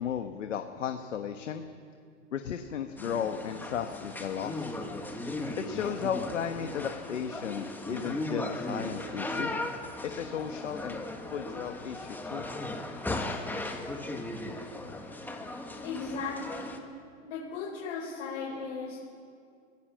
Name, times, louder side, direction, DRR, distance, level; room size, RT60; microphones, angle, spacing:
voice 1, 0.0-1.6 2.3-4.7 5.6-9.5 10.0-11.0 11.3-12.5, left 8 dB, 90° left, 6 dB, 1.4 m, -35 dB
sound 1, 3.0-16.8, left 2 dB, 5° left, 1.7 m, -37 dB
voice 2, 15.8-16.8 17.2-19.0, left 4 dB, 55° left, -4 dB, 5.4 m, -36 dB
23.0 x 16.5 x 7.6 m, 2.3 s
hypercardioid pair, 125°, 36 cm